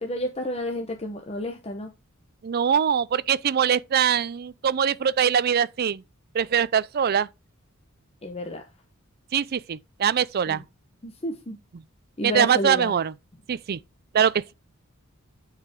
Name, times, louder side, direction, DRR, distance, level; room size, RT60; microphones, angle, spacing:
voice 1, 0.0-1.9 8.2-8.6 10.5-10.6 11.0-11.6 12.2-12.9, left 1 dB, 30° left, 0.9 m, -31 dB
voice 2, 2.4-6.0 6.3-7.3 9.3-10.6 12.2-13.1 13.5-13.8 14.1-14.5, right 8 dB, 45° right, 0.4 m, -23 dB
9.1 x 5.0 x 3.6 m
head